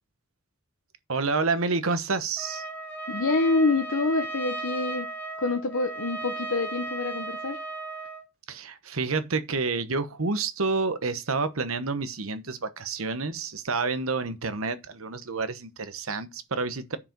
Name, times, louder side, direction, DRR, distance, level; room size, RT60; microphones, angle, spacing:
voice 1, 1.1-2.6 8.5-17.0, right 4 dB, 85° right, 1.1 m, -29 dB
Trumpet, 2.4-8.2, right 2 dB, 10° left, 2.1 m, -35 dB
voice 2, 3.1-5.1 5.4-7.6, left 3 dB, 75° left, 0.9 m, -26 dB
9.8 x 4.9 x 5.2 m
head